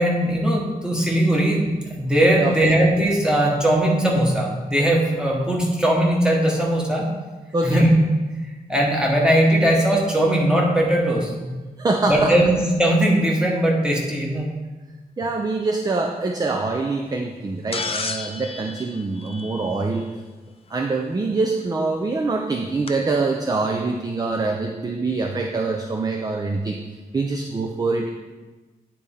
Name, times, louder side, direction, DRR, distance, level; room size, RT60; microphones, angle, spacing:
voice 1, 0.0-1.7 2.0-7.0 7.6-8.0 8.7-11.5 12.1-14.5, right 1 dB, 5° right, -3 dB, 1.3 m, -19 dB
voice 2, 7.5-7.9 11.8-12.4 15.2-20.1 20.7-26.8 27.1-28.1, right 3 dB, 25° right, 3 dB, 0.4 m, -24 dB
sound 1, 17.7-20.0 21.6-21.7 22.9-23.0, left 4 dB, 40° left, 0.5 m, -31 dB
9.4 x 4.2 x 3.5 m, 1.2 s
wide cardioid pair, 130°, 16 cm